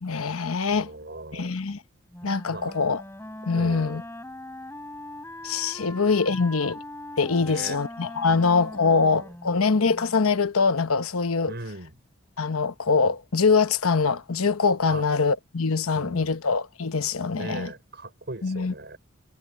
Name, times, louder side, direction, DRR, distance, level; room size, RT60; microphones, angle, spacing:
voice 1, 0.0-0.9 1.3-1.8 2.2-3.0 3.5-4.0 5.4-6.8 7.2-11.5 12.4-17.7 18.4-18.7, left 4 dB, 90° left, 1.0 m, -23 dB
voice 2, 0.7-1.6 2.5-2.7 3.5-4.0 6.3-6.4 7.4-7.8 8.3-8.5 8.8-9.3 11.5-11.9 14.9-15.2 16.0-16.4 17.3-19.0, right 2 dB, 50° right, 5.6 m, -39 dB
Wind instrument woodwind instrument, 2.1-10.3, left 1 dB, 10° left, 5.8 m, -41 dB
head